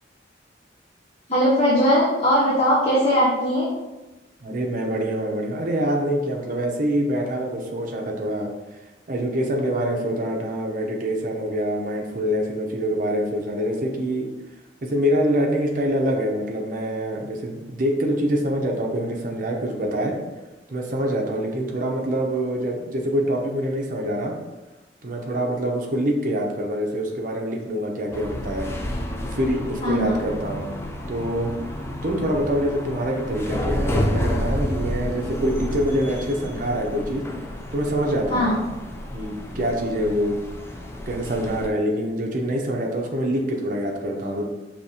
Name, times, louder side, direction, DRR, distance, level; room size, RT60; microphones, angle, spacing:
voice 1, 1.3-3.7 29.8-30.1 38.3-38.6, equal, 35° left, -7 dB, 0.7 m, -19 dB
voice 2, 4.4-8.5 9.1-14.3 14.8-20.2 20.7-24.4 25.0-28.7 29.3-30.7 31.1-37.2 37.7-38.5 39.1-40.4 41.1-44.5, equal, 45° right, 1 dB, 0.7 m, -25 dB
sound 1, 28.1-41.7, left 1 dB, 15° left, 0.3 m, -30 dB
5.2 x 2.8 x 2.7 m, 1.1 s
head